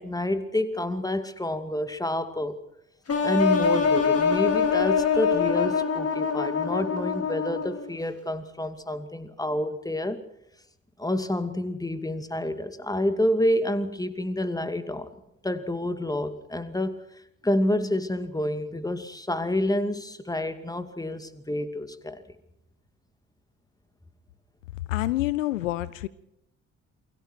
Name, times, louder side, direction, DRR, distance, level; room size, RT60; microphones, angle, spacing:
voice 1, 0.0-2.6 3.2-10.2 11.0-15.1 15.4-17.0 17.4-22.2, left 1 dB, 10° left, 2.4 m, -28 dB
sound 1, 3.1-7.9, left 6 dB, 40° left, 4.7 m, -24 dB
voice 2, 24.9-26.1, left 16 dB, 80° left, 0.7 m, -27 dB
28.5 x 22.5 x 4.6 m
figure-of-eight pair, 45°, 38 cm